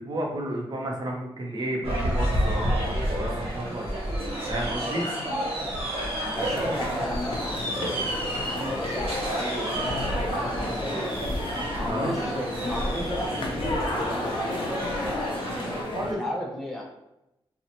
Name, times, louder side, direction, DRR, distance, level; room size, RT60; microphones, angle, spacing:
voice 1, 0.0-3.9 4.5-5.1 11.8-12.2 15.9-16.2, right 1 dB, 45° right, -1 dB, 0.6 m, -31 dB
sound 1, 1.8-15.8, right 1 dB, 90° right, 0.8 m, -30 dB
voice 2, 4.8-5.3 5.6-5.8 6.2-7.9 8.4-11.0 11.7-15.5 16.0-16.8, equal, 5° left, -2 dB, 0.5 m, -34 dB
sound 2, 6.3-16.1, left 2 dB, 65° left, 0.4 m, -34 dB
2.7 x 2.1 x 2.8 m, 0.87 s
wide cardioid pair, 120°, 9 cm